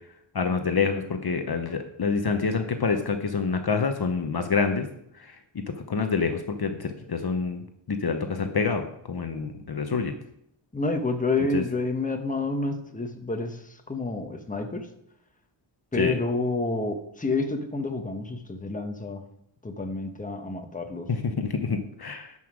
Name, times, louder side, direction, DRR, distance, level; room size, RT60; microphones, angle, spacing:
voice 1, 0.3-4.9 5.2-7.6 7.9-10.1 11.4-11.6 15.9-16.2 21.1-22.3, left 5 dB, 50° left, 6 dB, 1.0 m, -27 dB
voice 2, 10.7-13.6 13.9-14.9 15.9-19.2 19.6-21.1, left 3 dB, 15° left, 5 dB, 1.2 m, -29 dB
11.0 x 5.6 x 6.3 m, 0.76 s
wide cardioid pair, 100°, 49 cm